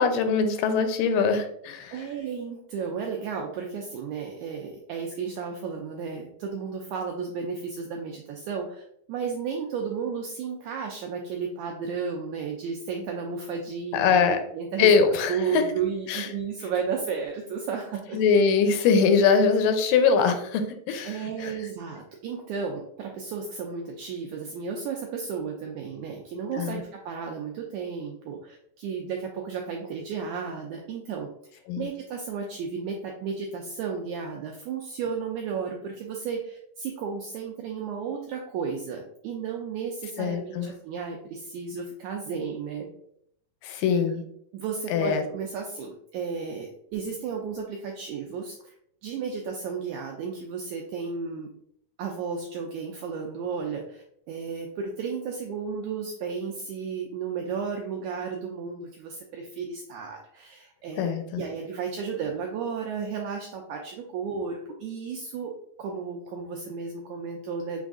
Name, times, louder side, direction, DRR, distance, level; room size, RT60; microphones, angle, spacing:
voice 1, 0.0-2.0 13.9-14.4 14.8-15.6 16.1-16.3 18.1-21.5 26.6-26.8 31.7-31.9 40.2-40.7 43.6-44.2 44.9-45.2 61.0-61.4, left 5 dB, 85° left, 7 dB, 2.3 m, -22 dB
voice 2, 1.9-8.8 9.1-14.9 15.3-18.4 21.1-31.3 31.8-42.9 43.7-44.0 44.5-48.7 49.0-51.5 52.0-65.5 65.8-67.8, right 5 dB, 90° right, 1 dB, 1.7 m, -33 dB
6.1 x 3.6 x 2.4 m, 0.68 s
omnidirectional pair, 4.0 m